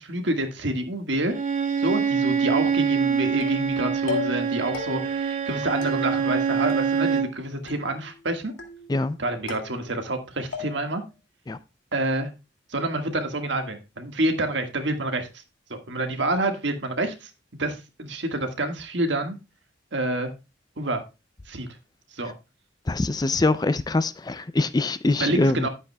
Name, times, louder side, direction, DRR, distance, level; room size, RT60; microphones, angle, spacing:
voice 1, 0.1-1.4 1.8-8.5 9.2-11.0 11.9-12.3 12.7-15.3 15.7-17.3 17.6-19.4 19.9-20.3 20.8-21.0 21.5-21.7 22.1-22.3 25.2-25.7, right 1 dB, 65° right, 1.7 m, -27 dB
Bowed string instrument, 1.3-7.4, right 6 dB, 40° right, 1.0 m, -25 dB
sound 1, 3.4-3.7 4.1-4.5 4.7-5.3 5.8-6.4 6.7-7.4 7.7-8.2 8.6-9.1 9.5-10.2 10.5-11.1, left 5 dB, 85° left, 2.1 m, -36 dB
voice 2, 22.9-25.7, left 2 dB, 20° left, 0.4 m, -23 dB
11.0 x 8.9 x 2.3 m
head